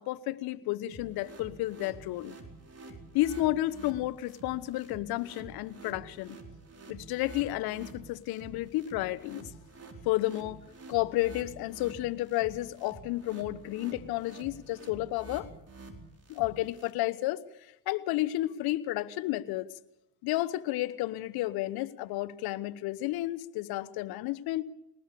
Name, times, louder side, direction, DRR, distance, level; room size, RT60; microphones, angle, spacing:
voice 1, 0.0-2.3 3.1-6.4 6.9-9.5 10.0-10.6 10.9-15.5 16.3-17.4 17.9-19.7 20.2-24.6, left 16 dB, 80° left, 15 dB, 1.1 m, -31 dB
sound 1, 0.9-16.9, right 3 dB, 40° right, 4.5 m, -49 dB
21.5 x 19.5 x 6.9 m, 0.87 s
supercardioid pair, 60°, 37 cm